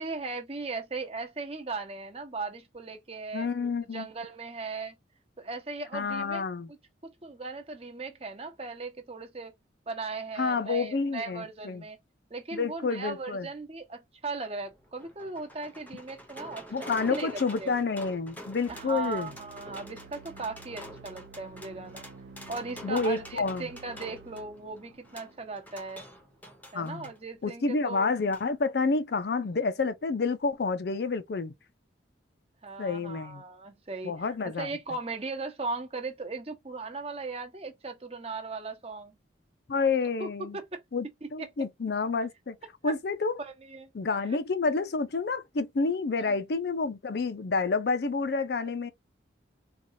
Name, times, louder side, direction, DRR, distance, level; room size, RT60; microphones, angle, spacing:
voice 1, 0.0-3.5 3.9-5.0 5.4-6.4 7.2-9.5 9.9-12.0 12.3-17.7 18.7-22.0 22.5-26.0 26.7-28.1 32.6-34.1 34.4-39.2 40.2-40.3 40.5-40.8 41.4-41.5 42.8-42.9 43.4-43.9 46.2-46.3, right 3 dB, 30° right, 0.8 m, -38 dB
voice 2, 3.3-4.1 5.9-6.7 10.4-11.9 12.5-13.5 16.7-19.3 22.8-23.7 26.7-27.1 27.4-31.5 32.8-33.4 34.0-34.7 39.7-40.6 40.9-41.1 41.3-42.6 42.8-43.4 43.9-48.9, left 4 dB, 55° left, 0.4 m, -29 dB
sound 1, 14.6-27.2 28.3-28.5 28.8-28.9, equal, 10° left, 0.7 m, -47 dB
sound 2, 18.7-26.2, right 4 dB, 60° right, 0.4 m, -51 dB
4.0 x 2.3 x 2.7 m
head